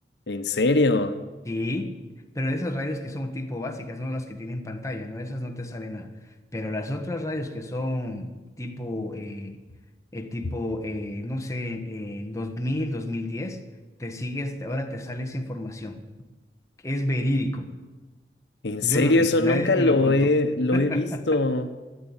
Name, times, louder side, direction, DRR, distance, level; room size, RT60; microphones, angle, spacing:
voice 1, 0.3-1.2 18.6-21.7, left 2 dB, 85° left, 1.0 m, -21 dB
voice 2, 1.4-1.9 2.3-6.1 6.5-9.6 10.1-13.6 14.0-16.0 16.8-17.7 18.8-20.3 20.7-21.2, left 1 dB, 20° left, 1.3 m, -30 dB
13.5 x 9.8 x 8.8 m
head